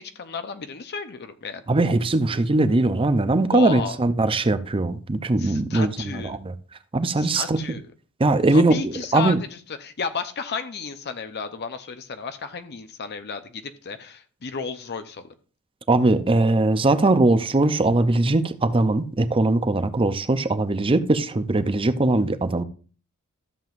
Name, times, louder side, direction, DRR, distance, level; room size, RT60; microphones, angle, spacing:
voice 1, 0.0-1.6 3.5-4.0 5.4-6.4 7.2-7.9 8.5-15.3, left 5 dB, 50° left, 0.7 m, -33 dB
voice 2, 1.7-6.5 6.9-7.6 8.2-9.4 15.9-22.6, right 2 dB, 25° right, 0.5 m, -20 dB
13.0 x 7.5 x 2.5 m
head